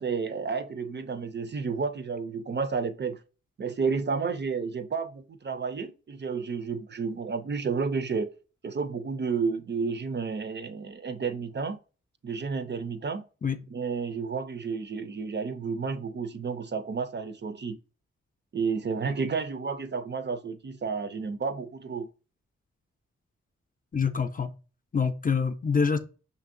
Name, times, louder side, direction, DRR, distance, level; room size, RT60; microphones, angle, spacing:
voice 1, 0.0-3.2 3.6-8.3 8.6-11.8 12.2-13.3 13.7-17.8 18.5-22.1, right 5 dB, 40° right, 0.5 m, -31 dB
voice 2, 23.9-24.5 24.9-26.0, left 5 dB, 30° left, 0.5 m, -25 dB
5.4 x 2.6 x 2.6 m
cardioid pair, 55°, 29 cm